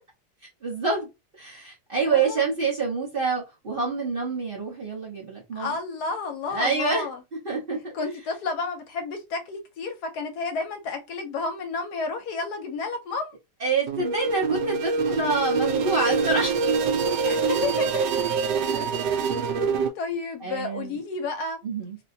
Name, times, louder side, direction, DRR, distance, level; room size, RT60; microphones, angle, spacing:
voice 1, 0.6-1.1 1.4-5.8 6.5-7.1 7.4-7.9 13.6-16.5 18.5-19.6 20.4-21.0 21.6-22.0, right 4 dB, 35° right, 1.1 m, -27 dB
voice 2, 2.0-2.4 5.6-7.2 7.9-13.3 17.2-18.2 19.1-19.4 20.0-21.6, left 4 dB, 70° left, 1.1 m, -31 dB
sound 1, 13.9-19.9, right 5 dB, 85° right, 1.2 m, -25 dB
3.0 x 2.9 x 2.7 m
omnidirectional pair, 1.9 m